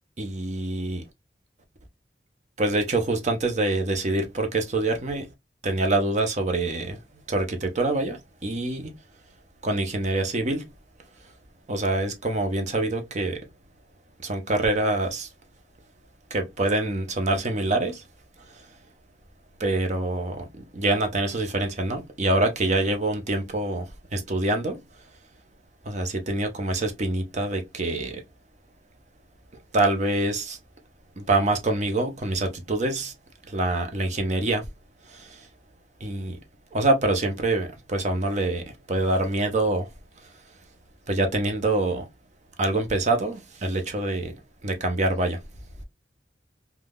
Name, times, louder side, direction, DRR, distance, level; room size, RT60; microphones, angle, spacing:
voice 1, 0.2-1.0 2.6-5.3 5.6-7.0 7.3-8.9 9.6-10.6 11.7-13.4 14.2-15.3 16.3-18.0 19.6-20.4 20.7-23.8 24.1-24.8 25.9-28.2 29.7-30.6 31.2-33.1 33.5-34.7 35.1-35.3 36.0-36.3 36.7-39.9 41.1-42.0 42.6-44.3 44.6-45.4, right 2 dB, 40° right, 0.7 m, -25 dB
3.5 x 2.3 x 2.2 m
head